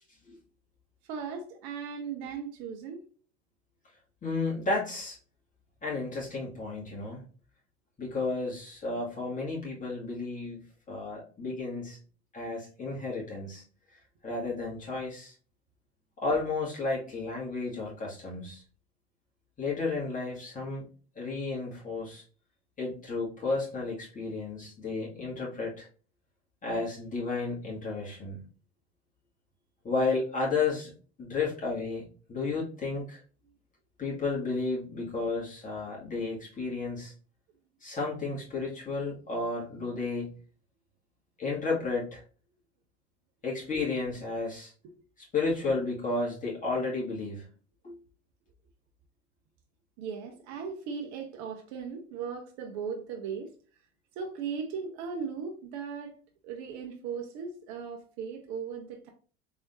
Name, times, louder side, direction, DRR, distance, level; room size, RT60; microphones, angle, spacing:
voice 1, 1.1-3.1 50.0-53.5 54.2-56.2 56.4-59.1, right 6 dB, 60° right, 0.9 m, -37 dB
voice 2, 4.2-5.2 5.8-7.2 8.0-10.6 10.9-12.0 12.3-13.6 14.2-15.3 16.2-18.6 19.6-20.9 21.2-22.2 22.8-25.9 26.6-28.4 29.8-30.9 31.2-32.0 32.3-33.2 34.0-37.1 37.8-40.3 41.4-42.2 43.4-44.7 45.3-47.4 47.8-47.9, left 3 dB, 25° left, 2.2 m, -32 dB
4.1 x 3.6 x 2.6 m
hypercardioid pair, 85°, 32 cm